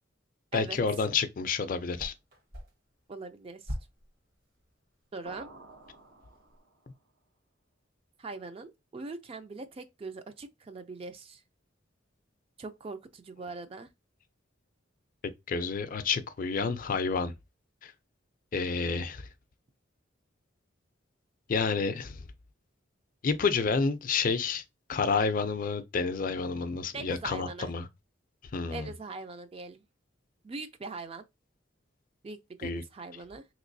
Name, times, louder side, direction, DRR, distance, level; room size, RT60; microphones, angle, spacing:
voice 1, 0.5-2.1 15.5-17.3 17.8-17.9 18.5-19.3 21.5-22.2 23.2-24.6 24.9-27.9 28.5-28.9 32.6-32.8, left 5 dB, 45° left, 0.4 m, -29 dB
sound 1, 1.9-6.6, equal, 50° right, 1.0 m, -46 dB
voice 2, 3.1-3.8 5.1-5.5 8.2-11.4 12.6-13.9 26.9-27.7 28.7-29.8 30.4-31.2 32.2-33.5, right 3 dB, 30° right, 0.3 m, -41 dB
sound 2, 5.3-7.0, right 2 dB, 85° right, 0.8 m, -51 dB
3.4 x 3.0 x 2.6 m
head